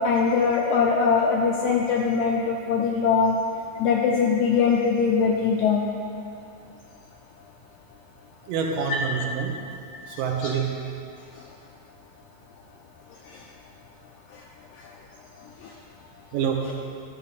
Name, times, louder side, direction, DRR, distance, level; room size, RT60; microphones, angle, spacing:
voice 1, 0.0-3.3 3.8-5.9 10.4-10.5 15.6-15.7, left 5 dB, 80° left, -1 dB, 1.7 m, -22 dB
voice 2, 8.5-9.6 10.2-11.0 16.3-16.9, right 6 dB, 85° right, 2 dB, 2.4 m, -27 dB
12.5 x 6.6 x 4.1 m, 2.5 s
omnidirectional pair, 4.0 m